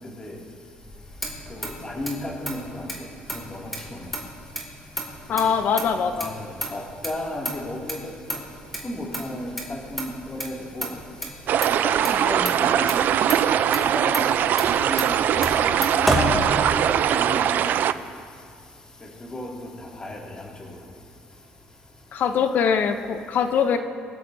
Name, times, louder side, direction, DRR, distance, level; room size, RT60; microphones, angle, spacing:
Motor vehicle (road), 0.8-17.1, right 1 dB, ahead, 2.4 m, -32 dB
voice 1, 1.5-2.8 3.5-3.6 5.4-5.5 6.2-6.3 6.7-8.0 8.8-10.9 11.8-13.0 13.5-14.3 14.8-15.4 15.6-16.2 16.7-17.4 19.3-19.5 20.0-20.2, left 1 dB, 20° left, -2 dB, 2.3 m, -33 dB
voice 2, 5.3-6.3 22.1-23.8, left 6 dB, 55° left, 8 dB, 0.7 m, -22 dB
sound 1, 11.5-17.9, right 10 dB, 60° right, 0.4 m, -21 dB
22.0 x 12.5 x 2.7 m, 2.3 s
cardioid pair, 120°, 4 cm